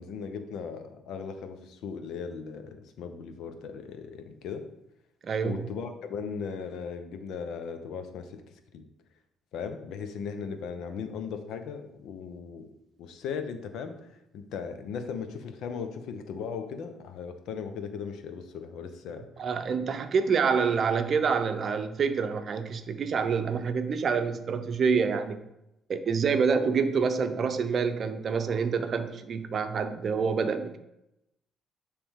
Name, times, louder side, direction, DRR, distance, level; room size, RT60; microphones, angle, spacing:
voice 1, 0.0-4.6 5.4-8.4 8.7-8.8 9.5-12.7 13.0-19.2, left 6 dB, 75° left, 8 dB, 0.8 m, -37 dB
voice 2, 5.2-5.6 19.4-25.4 25.9-30.8, right 5 dB, 50° right, 9 dB, 0.7 m, -27 dB
9.9 x 3.4 x 3.7 m, 0.86 s
cardioid pair, 85°, 0 cm